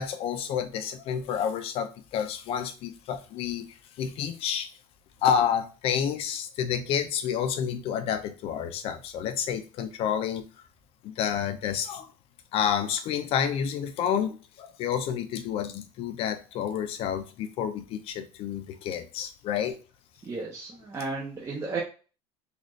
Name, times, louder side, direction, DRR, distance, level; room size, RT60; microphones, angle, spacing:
voice 1, 0.0-3.7 4.0-4.7 5.2-10.5 11.0-12.1 12.5-19.8, left 8 dB, 50° left, 0.6 m, -29 dB
voice 2, 20.2-21.8, right 3 dB, 25° right, 0.8 m, -34 dB
4.1 x 2.5 x 3.1 m
cardioid pair, 140°, 12 cm